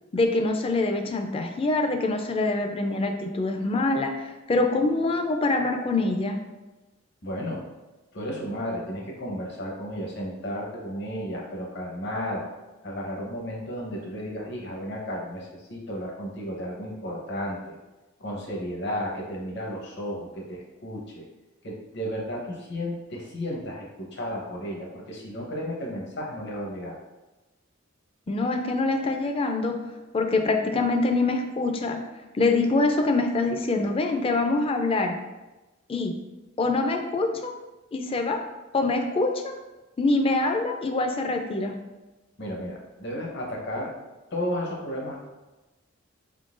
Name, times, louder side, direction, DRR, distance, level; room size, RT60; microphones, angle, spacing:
voice 1, 0.1-6.4 28.3-29.8 30.1-32.0 32.4-35.1 35.9-36.1 36.6-37.5 37.9-38.4 38.7-39.5 40.0-41.7, left 2 dB, 30° left, 4 dB, 0.4 m, -25 dB
voice 2, 7.2-7.6 8.1-12.5 12.8-17.8 18.2-21.2 21.6-27.0 42.4-43.9 44.3-45.3, equal, 60° left, -1 dB, 0.9 m, -33 dB
4.2 x 3.7 x 2.5 m, 1.1 s
head